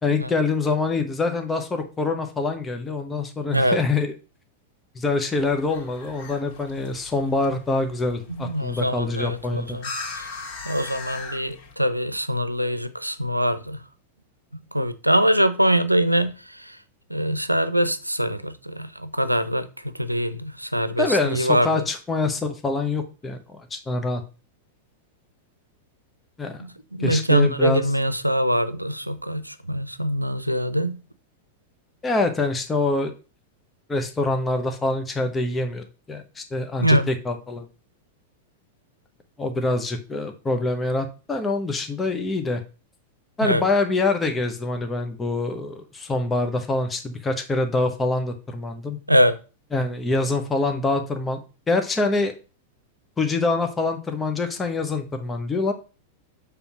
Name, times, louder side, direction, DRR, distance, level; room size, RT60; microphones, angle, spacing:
voice 1, 0.0-4.1 4.9-9.8 21.0-24.2 26.4-26.6 27.0-27.8 32.0-33.1 33.9-37.6 39.4-42.6 43.4-49.0 49.7-51.4 51.7-52.3 53.2-55.7, left 3 dB, 15° left, 1.1 m, -25 dB
sound 1, 5.3-11.7, left 4 dB, 40° left, 2.5 m, -39 dB
voice 2, 8.3-9.9 10.2-10.3 10.6-13.8 14.5-16.8 17.1-19.7 19.9-21.8 26.6-31.0 36.8-37.1 43.4-43.6 49.1-49.4, equal, 90° right, 0.6 m, -23 dB
6.9 x 3.5 x 6.0 m
figure-of-eight pair, 90°, 0 cm